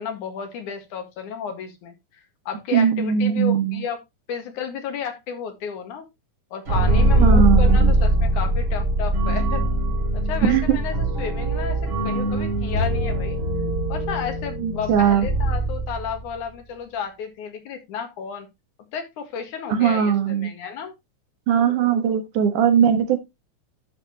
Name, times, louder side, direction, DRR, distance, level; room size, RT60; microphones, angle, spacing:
voice 1, 0.0-1.9 2.5-4.0 4.3-6.1 6.5-9.6 10.1-13.4 13.9-18.5 18.9-20.9, left 7 dB, 75° left, 6 dB, 3.2 m, -32 dB
voice 2, 2.7-3.8 7.2-7.9 10.4-10.8 14.6-15.3 19.7-20.5 21.5-23.2, right 8 dB, 80° right, 7 dB, 3.0 m, -19 dB
sound 1, 6.7-16.3, right 1 dB, 50° right, 4.3 m, -21 dB
11.0 x 6.8 x 2.9 m, 0.21 s
omnidirectional pair, 3.5 m